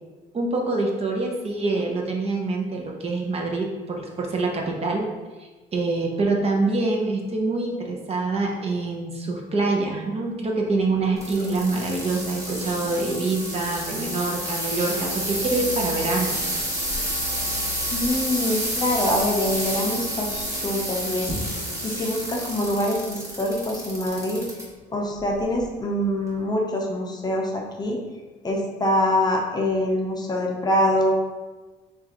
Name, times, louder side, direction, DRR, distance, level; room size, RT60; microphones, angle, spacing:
voice 1, 0.3-5.1 5.7-16.4, right 3 dB, 35° right, 0 dB, 0.7 m, -25 dB
sound 1, 10.6-26.1, equal, 85° right, 0.9 m, -41 dB
sound 2, 11.2-24.6 25.2-25.6 26.3-26.4, right 1 dB, 15° right, 1.3 m, -29 dB
voice 2, 17.9-21.4 21.8-24.5 24.9-28.0 28.4-31.2, left 1 dB, 25° left, 0 dB, 0.7 m, -24 dB
6.1 x 2.5 x 2.9 m, 1.3 s
cardioid pair, 110°, 17 cm